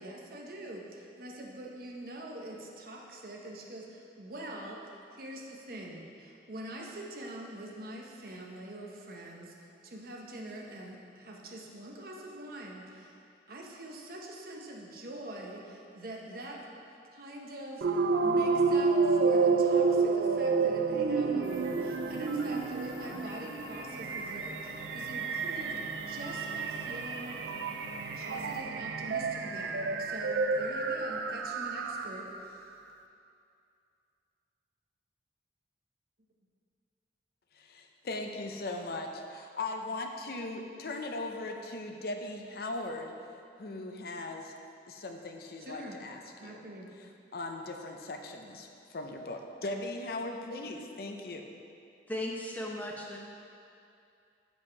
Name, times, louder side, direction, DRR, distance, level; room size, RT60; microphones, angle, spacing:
voice 1, 0.0-4.8 5.1-9.5 9.8-13.2 13.5-16.6 17.1-17.9 18.2-25.8 26.1-27.4 28.1-32.6 45.6-46.0 46.4-46.9, right 1 dB, 55° right, -1 dB, 0.9 m, -44 dB
sound 1, 17.8-32.4, right 4 dB, 80° right, 0.4 m, -30 dB
sound 2, 21.4-28.6, left 1 dB, 85° left, 1.5 m, -47 dB
voice 2, 37.5-43.1 43.6-44.5 44.9-46.6 47.3-51.4, left 2 dB, 60° left, 4 dB, 0.6 m, -39 dB
voice 3, 52.1-53.2, left 1 dB, 10° left, -2 dB, 0.7 m, -36 dB
7.1 x 5.2 x 4.6 m, 2.5 s
head